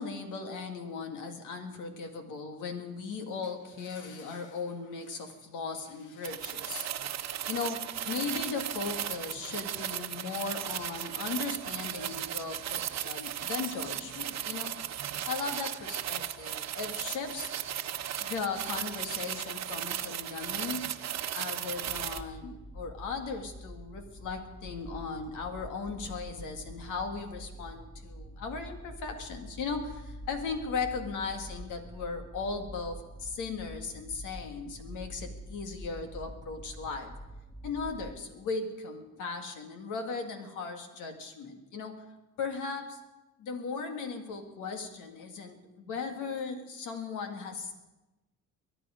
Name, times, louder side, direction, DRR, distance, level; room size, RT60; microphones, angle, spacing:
voice 1, 0.0-6.9 7.5-14.7 15.2-17.5 18.2-20.9 21.3-37.1 37.6-42.0 42.4-43.0 43.4-47.7, left 4 dB, 90° left, 5 dB, 2.1 m, -37 dB
sound 1, 6.2-22.2, right 10 dB, 60° right, 0.9 m, -36 dB
sound 2, 21.8-38.2, equal, 10° left, 1.5 m, -46 dB
22.5 x 10.0 x 5.1 m, 1.1 s
cardioid pair, 90°, 30 cm